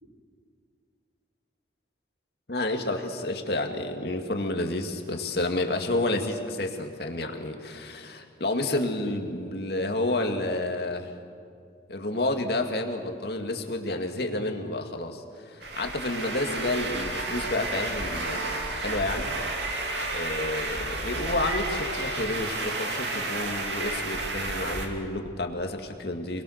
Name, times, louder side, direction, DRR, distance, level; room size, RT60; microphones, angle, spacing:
voice 1, 2.5-11.1 11.9-19.3 20.1-26.4, left 2 dB, 60° left, 4 dB, 2.2 m, -30 dB
sound 1, 15.6-24.9, right 2 dB, 80° right, 2.7 m, -31 dB
28.5 x 21.0 x 6.6 m, 2.3 s
head